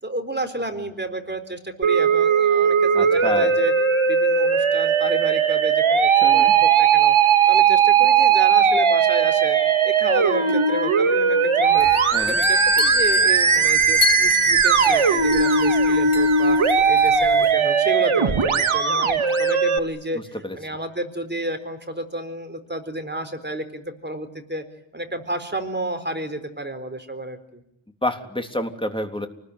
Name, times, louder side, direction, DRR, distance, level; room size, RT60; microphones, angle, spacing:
voice 1, 0.0-3.7 4.1-7.1 7.5-24.6 24.9-27.6, right 1 dB, 20° right, 7 dB, 4.0 m, -31 dB
Musical instrument, 1.8-19.8, right 6 dB, 80° right, 2.2 m, -18 dB
voice 2, 2.9-3.5 6.2-6.5 12.1-12.4 20.4-20.6 28.0-29.3, left 1 dB, 10° left, 5 dB, 3.4 m, -28 dB
sound 1, 11.7-17.5, left 6 dB, 85° left, 4.1 m, -31 dB
29.5 x 20.5 x 9.9 m, 0.77 s
wide cardioid pair, 105°, 49 cm